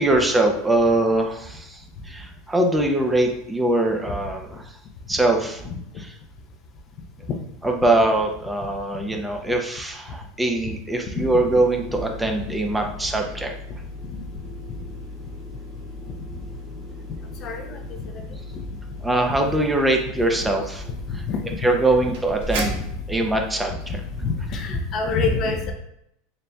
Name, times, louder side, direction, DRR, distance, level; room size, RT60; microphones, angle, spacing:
voice 1, 0.0-4.8 5.1-5.6 6.0-6.1 7.6-13.5 19.0-20.8 21.6-22.8 23.1-24.0, right 2 dB, 10° right, 2 dB, 0.5 m, -22 dB
sound 1, 11.2-24.7, left 1 dB, 75° right, 1.0 m, -36 dB
voice 2, 17.4-17.8 21.1-21.6 22.0-22.1 22.7-22.8 24.2-25.7, left 4 dB, 45° left, 4 dB, 0.6 m, -26 dB
4.0 x 3.3 x 2.3 m, 0.77 s
supercardioid pair, 125°, 0 cm